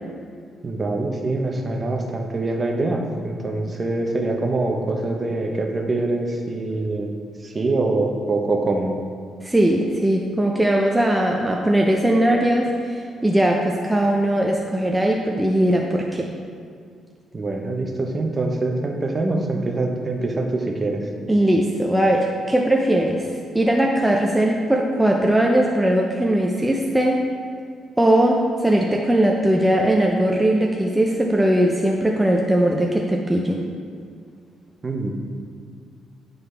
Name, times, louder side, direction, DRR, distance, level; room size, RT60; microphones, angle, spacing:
voice 1, 0.6-7.1 7.4-8.9 17.3-21.1 34.8-35.1, right 2 dB, 30° right, 2 dB, 0.8 m, -24 dB
voice 2, 9.4-16.3 21.3-27.2 28.0-33.7, right 1 dB, 5° right, 0 dB, 0.5 m, -19 dB
9.2 x 3.9 x 3.3 m, 2.2 s
cardioid pair, 90°, 0 cm